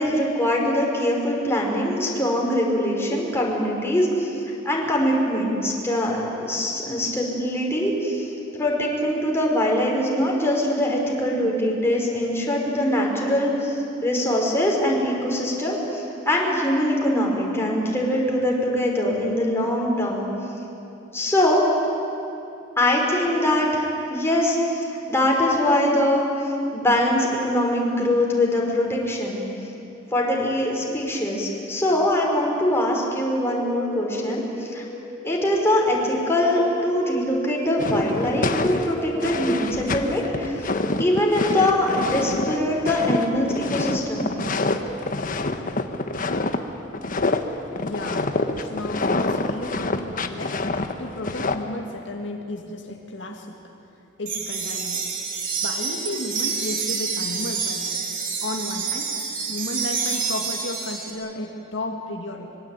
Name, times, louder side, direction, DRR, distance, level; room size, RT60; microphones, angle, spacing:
voice 1, 0.0-4.3 4.6-20.3 21.1-21.7 22.8-29.4 30.1-34.8 35.2-40.5 41.0-44.4, left 1 dB, 15° left, -2 dB, 4.9 m, -23 dB
sound 1, 33.4-43.0, equal, 15° right, 8.0 m, -37 dB
sound 2, 37.8-46.6 46.9-47.4 47.8-51.6, left 2 dB, 45° left, 1.3 m, -26 dB
voice 2, 47.8-50.6 51.0-53.6 54.2-55.1 55.6-58.1 58.4-59.2 59.5-62.6, left 1 dB, 70° left, 2 dB, 2.1 m, -33 dB
sound 3, 54.3-61.1, right 5 dB, 45° right, 3.6 m, -28 dB
25.5 x 22.5 x 9.1 m, 2.8 s
head